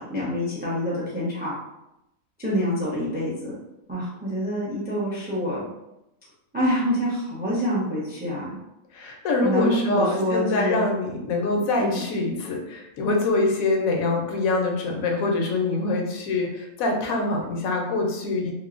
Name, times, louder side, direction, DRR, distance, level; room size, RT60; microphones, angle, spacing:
voice 1, 0.1-1.5 2.4-3.5 3.9-5.6 6.5-8.5 9.4-10.8 11.5-12.0, equal, 15° right, -6 dB, 0.4 m, -26 dB
voice 2, 8.9-18.5, left 2 dB, 80° left, 1 dB, 1.0 m, -24 dB
2.9 x 2.0 x 2.4 m, 0.88 s
omnidirectional pair, 1.4 m